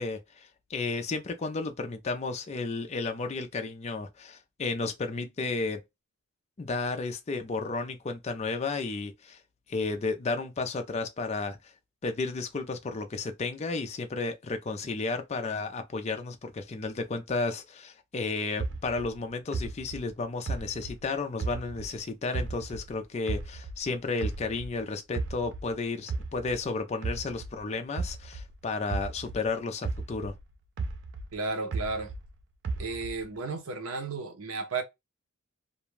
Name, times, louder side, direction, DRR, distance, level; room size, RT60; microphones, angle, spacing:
voice 1, 0.0-5.8 6.6-9.4 9.7-11.7 12.0-30.3, left 3 dB, 30° left, 0.4 m, -33 dB
sound 1, 18.6-22.0 22.3-24.8 25.1-29.5 29.8-32.3 32.6-33.4, right 3 dB, 55° right, 0.4 m, -35 dB
voice 2, 31.3-32.1 32.8-34.8, right 3 dB, 85° right, 0.7 m, -33 dB
2.4 x 2.2 x 3.1 m
head